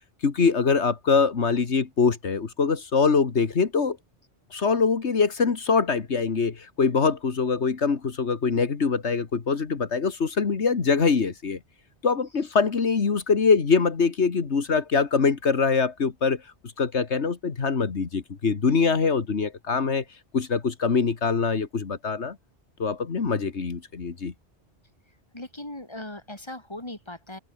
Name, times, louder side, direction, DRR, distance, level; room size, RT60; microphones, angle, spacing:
voice 1, 0.2-4.0 4.5-11.6 12.0-16.4 16.8-20.0 20.3-22.4 22.8-24.3, left 5 dB, 85° left, 2.1 m, -23 dB
voice 2, 25.3-27.4, left 1 dB, 25° left, 4.6 m, -38 dB
omnidirectional pair, 1.1 m